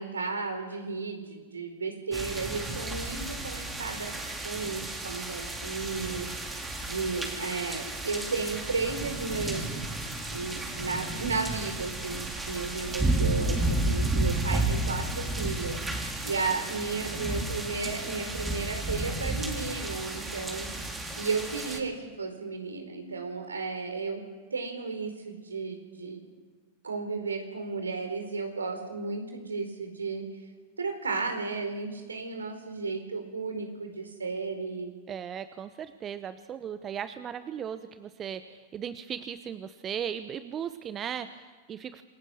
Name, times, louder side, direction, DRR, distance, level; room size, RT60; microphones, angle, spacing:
voice 1, 0.0-4.1 4.4-9.7 10.3-15.8 16.2-20.7 21.2-24.2 24.5-26.3 26.8-30.3 30.8-34.9, right 4 dB, 75° right, 5 dB, 4.6 m, -34 dB
sound 1, 2.1-21.8, right 2 dB, 10° right, 3.5 m, -32 dB
voice 2, 35.1-42.0, right 8 dB, 25° right, 12 dB, 1.0 m, -37 dB
27.0 x 21.5 x 6.5 m, 1.3 s
figure-of-eight pair, 90°, 0 cm